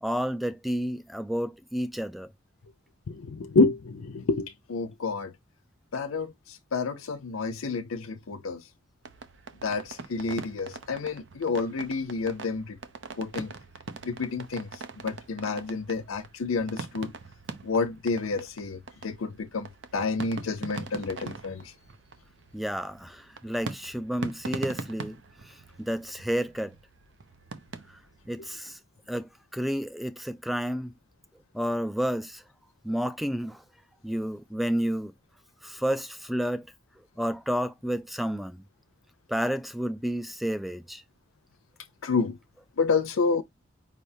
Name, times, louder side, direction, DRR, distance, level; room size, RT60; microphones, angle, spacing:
voice 1, 0.0-2.3 22.5-25.2 25.8-26.7 28.3-28.8 29.1-30.9 31.5-32.4 32.8-33.6 34.0-35.1 35.6-36.6 37.2-38.6 39.3-41.0, equal, ahead, 0.3 m, -30 dB
voice 2, 3.1-5.3 5.9-8.6 9.6-12.8 13.2-13.5 14.0-17.1 17.6-21.7 42.0-42.4 42.8-43.4, left 4 dB, 90° left, 0.6 m, -29 dB
sound 1, 9.0-28.5, right 3 dB, 65° right, 0.7 m, -42 dB
5.3 x 3.3 x 2.6 m
head